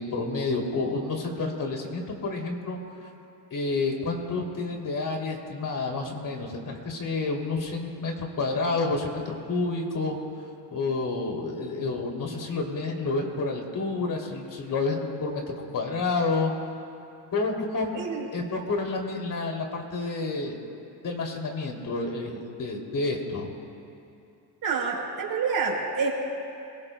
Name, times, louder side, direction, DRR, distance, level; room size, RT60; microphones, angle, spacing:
voice 1, 0.0-2.8 3.5-10.2 10.7-16.5 17.3-17.9 18.3-20.5 21.0-23.5, left 3 dB, 45° left, 1 dB, 2.9 m, -29 dB
voice 2, 17.9-18.3 24.6-26.1, right 5 dB, 55° right, -4 dB, 4.1 m, -27 dB
27.0 x 18.0 x 2.2 m, 2.6 s
cardioid pair, 100°, 44 cm